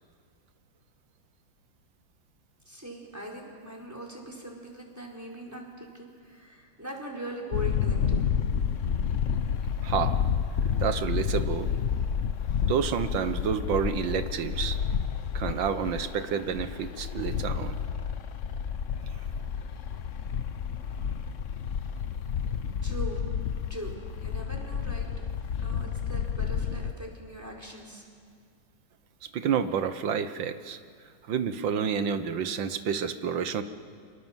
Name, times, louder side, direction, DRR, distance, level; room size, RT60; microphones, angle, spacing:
voice 1, 2.7-8.2 22.8-23.2 23.7-25.1 25.6-28.0, equal, 10° right, 0 dB, 4.4 m, -41 dB
sound 1, 7.5-26.9, left 7 dB, 55° left, 1.0 m, -30 dB
voice 2, 9.8-10.2 10.8-11.7 12.7-14.8 15.3-17.8 29.3-30.8 31.3-33.6, right 7 dB, 75° right, 10 dB, 1.8 m, -29 dB
29.0 x 24.5 x 7.5 m, 2.2 s
omnidirectional pair, 2.1 m